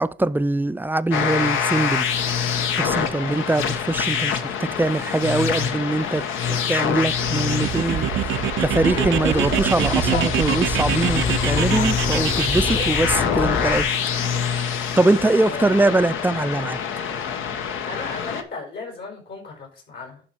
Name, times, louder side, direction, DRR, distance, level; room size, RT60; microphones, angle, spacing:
voice 1, 0.0-2.0 2.8-6.2 6.5-8.1 8.6-13.9 15.0-16.8, right 2 dB, 10° right, 0.4 m, -22 dB
sound 1, 1.1-18.4, left 7 dB, 85° left, 1.0 m, -25 dB
sound 2, 7.1-13.2, right 14 dB, 75° right, 0.5 m, -26 dB
Laughter, 8.7-13.8, left 4 dB, 45° left, 2.8 m, -28 dB
voice 2, 17.9-20.2, left 3 dB, 70° left, 4.7 m, -35 dB
11.5 x 4.4 x 4.4 m
cardioid pair, 90°, 20 cm